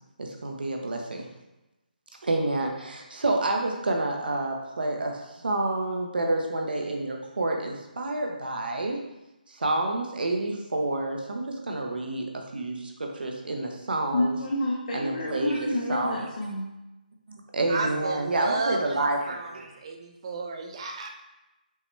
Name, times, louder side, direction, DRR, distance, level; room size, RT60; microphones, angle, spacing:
voice 1, 0.2-1.3 2.2-9.0 9.5-14.4 14.9-16.3 17.3-19.7, right 2 dB, 75° right, 1 dB, 0.8 m, -29 dB
voice 2, 14.1-16.7, left 1 dB, 50° left, -1 dB, 0.6 m, -29 dB
voice 3, 17.7-21.1, right 3 dB, 35° right, 3 dB, 0.5 m, -33 dB
5.4 x 2.2 x 3.1 m, 0.99 s
hypercardioid pair, 160°, 5 cm